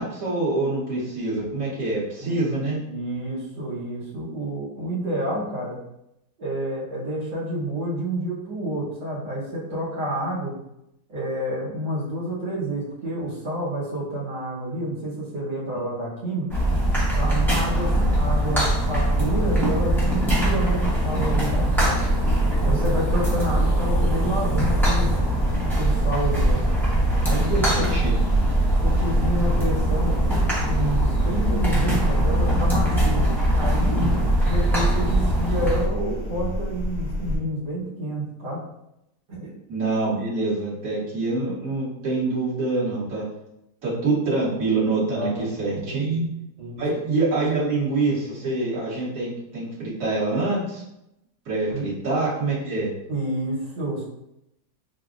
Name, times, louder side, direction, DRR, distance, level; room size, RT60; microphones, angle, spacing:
voice 1, 0.0-2.8 17.9-18.1 27.7-28.5 39.7-43.2 43.8-46.3 46.8-50.8 51.4-52.9, right 3 dB, 55° right, -8 dB, 1.6 m, -25 dB
voice 2, 2.2-5.8 6.4-10.6 11.1-16.7 17.1-22.1 22.6-25.1 25.6-26.6 27.2-27.9 28.8-30.2 30.7-34.0 34.5-38.6 39.3-39.5 45.1-45.5 45.8-46.3 46.6-46.8 51.7-51.9 53.1-54.0, right 1 dB, 85° right, -7 dB, 1.7 m, -29 dB
sound 1, 16.5-35.9, right 1 dB, 5° left, 0.3 m, -22 dB
sound 2, 18.8-25.2, left 2 dB, 60° left, 0.9 m, -42 dB
sound 3, 24.4-37.4, equal, 75° left, 1.5 m, -30 dB
5.4 x 2.0 x 2.4 m, 0.83 s
omnidirectional pair, 1.8 m